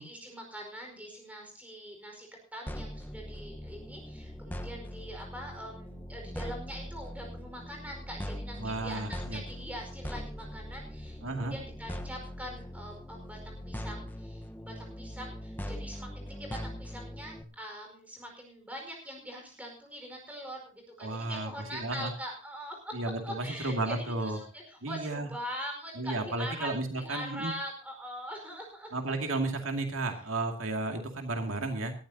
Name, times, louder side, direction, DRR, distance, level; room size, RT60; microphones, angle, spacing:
voice 1, 0.0-22.9 23.2-23.9 24.2-29.1, equal, 5° right, 1 dB, 4.9 m, -43 dB
sound 1, 2.7-17.4, equal, 10° left, 1.1 m, -41 dB
voice 2, 8.6-9.4 11.2-11.5 21.0-22.1 22.9-24.4 24.8-25.3 26.0-27.5 28.9-31.9, right 2 dB, 75° right, 4 dB, 2.4 m, -33 dB
19.0 x 13.5 x 2.8 m, 0.37 s
head